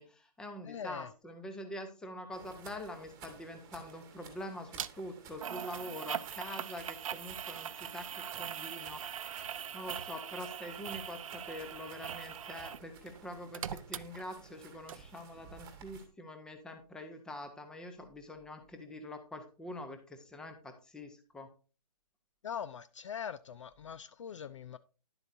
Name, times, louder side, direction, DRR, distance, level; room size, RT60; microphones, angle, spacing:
voice 1, 0.0-9.3 9.7-21.5, left 1 dB, 5° left, 0.7 m, -45 dB
voice 2, 0.7-1.1 22.4-24.8, left 8 dB, 50° left, 0.4 m, -42 dB
sound 1, 2.3-16.1, right 6 dB, 15° right, 1.4 m, -55 dB
sound 2, 4.8-4.9 5.4-12.9 13.1-14.6 14.9-15.0, right 8 dB, 55° right, 0.5 m, -41 dB
10.5 x 7.9 x 2.6 m
hypercardioid pair, 150°, 20 cm